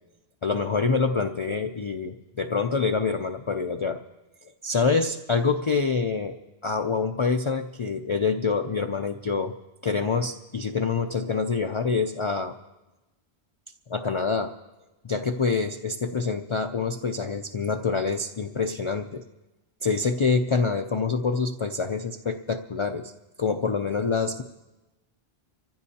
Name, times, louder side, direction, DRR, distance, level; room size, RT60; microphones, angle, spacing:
voice 1, 0.4-4.0 4.6-6.4 6.6-9.5 9.8-12.6 13.9-14.5 15.0-19.2 19.8-23.1 23.4-24.4, left 4 dB, 45° left, 6 dB, 0.4 m, -26 dB
25.0 x 15.0 x 2.8 m, 1.1 s
omnidirectional pair, 1.1 m